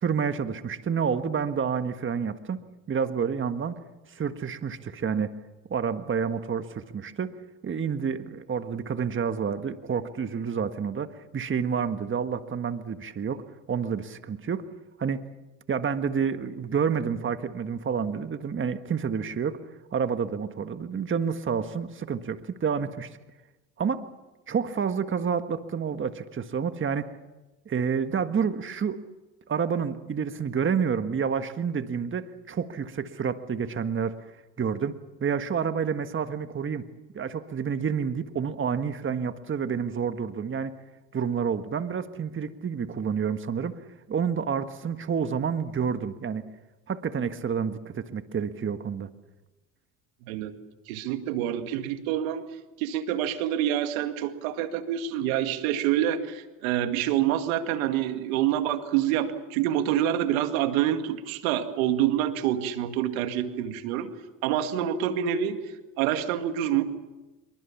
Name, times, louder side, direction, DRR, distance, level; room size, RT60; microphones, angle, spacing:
voice 1, 0.0-2.6 2.9-3.7 4.1-5.3 5.7-7.3 7.6-13.4 13.7-14.6 15.0-15.2 15.7-19.6 19.9-23.1 23.8-24.0 24.5-27.1 27.6-29.0 29.5-34.2 34.6-36.9 37.1-40.7 41.1-43.7 44.1-46.5 46.9-49.1, right 6 dB, 30° right, 9 dB, 1.6 m, -29 dB
voice 2, 50.2-50.5 50.9-52.4 52.8-64.1 64.4-65.6 66.0-66.8, right 11 dB, 85° right, 8 dB, 2.2 m, -27 dB
26.5 x 23.5 x 7.3 m, 1.1 s
supercardioid pair, 90°, 40 cm